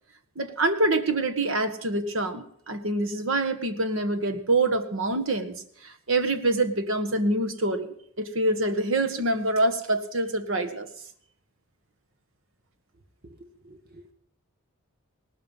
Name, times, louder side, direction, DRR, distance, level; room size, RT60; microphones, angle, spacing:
voice 1, 0.4-5.6 5.8-7.9 8.2-10.9, right 2 dB, 65° right, 9 dB, 1.6 m, -25 dB
voice 2, 13.2-14.1, right 1 dB, 45° right, 6 dB, 1.3 m, -50 dB
18.5 x 13.0 x 5.5 m, 0.67 s
head